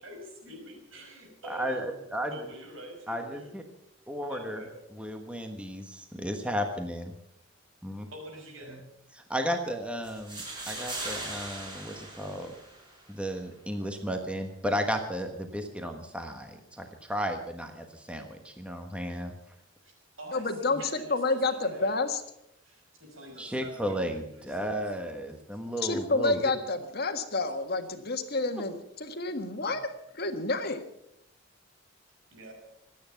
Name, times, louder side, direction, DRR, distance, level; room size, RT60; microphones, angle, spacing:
voice 1, 0.0-3.5 4.3-4.7 8.1-8.8 19.8-21.9 22.6-24.8 29.6-29.8 32.3-32.5, right 1 dB, 75° right, 2 dB, 5.9 m, -46 dB
voice 2, 1.5-2.3 3.1-3.6 4.1-4.6 5.0-7.1 7.8-8.1 9.3-12.5 13.1-19.3 23.4-26.4, equal, 5° right, 4 dB, 1.3 m, -34 dB
sound 1, 10.0-13.1, right 2 dB, 25° right, 6.4 m, -39 dB
voice 3, 20.3-20.8 21.1-22.2 25.8-30.8, left 3 dB, 50° left, 6 dB, 1.6 m, -29 dB
25.5 x 9.4 x 5.9 m, 0.80 s
head